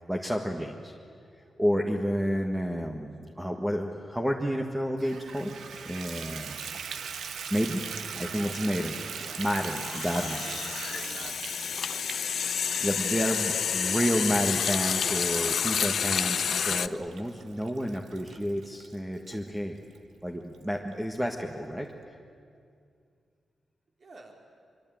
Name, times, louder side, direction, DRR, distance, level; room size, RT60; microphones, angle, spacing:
voice 1, 0.1-1.0 1.6-5.5 5.8-6.6 7.5-7.8 8.2-10.4 12.4-12.5 12.8-19.8 20.2-21.9, equal, 5° right, 1 dB, 1.6 m, -30 dB
Water tap faucet / Bathtub (filling or washing), 5.0-19.4 19.9-20.0 20.5-20.6 20.9-21.0, right 6 dB, 85° right, 1.4 m, -41 dB
voice 2, 7.9-8.7 9.2-9.4 10.2-10.6 10.9-11.4 24.0-24.3, right 3 dB, 45° right, 2 dB, 4.1 m, -48 dB
sound 1, 8.0-8.3 8.6-16.9, left 7 dB, 70° left, 0.6 m, -29 dB
24.5 x 24.0 x 9.2 m, 2.3 s
wide cardioid pair, 110°, 0 cm